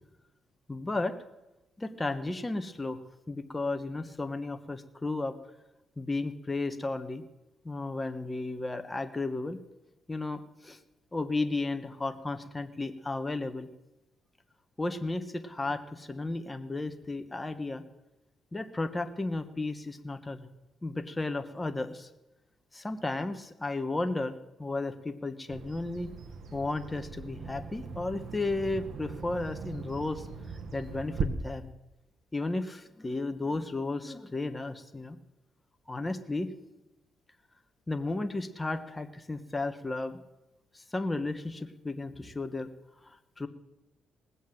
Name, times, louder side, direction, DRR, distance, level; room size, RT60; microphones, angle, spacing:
voice 1, 0.7-1.2 1.8-3.0 3.3-5.4 6.0-7.2 7.6-9.6 10.1-10.8 11.1-13.7 14.8-17.8 18.5-20.5 20.8-22.1 22.7-26.1 26.5-30.3 30.7-31.7 32.3-35.2 35.9-36.5 37.9-40.2 40.7-42.7 43.0-43.5, left 2 dB, 15° left, 8 dB, 1.3 m, -34 dB
Bird vocalization bird call bird song, 25.5-31.2, right 6 dB, 65° right, 1.6 m, -40 dB
19.0 x 8.4 x 7.8 m, 0.98 s
cardioid pair, 90°, 0 cm